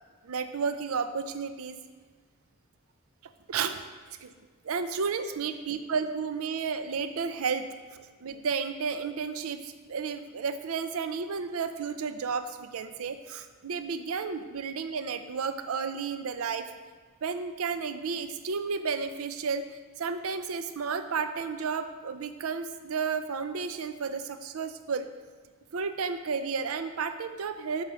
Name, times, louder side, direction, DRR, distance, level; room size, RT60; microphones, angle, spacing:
voice 1, 0.2-1.8 3.5-3.8 4.1-4.3 4.6-7.7 8.2-16.7 17.2-19.7 20.0-25.1 25.7-27.8, right 5 dB, 85° right, 9 dB, 0.5 m, -32 dB
9.6 x 5.5 x 6.2 m, 1.4 s
head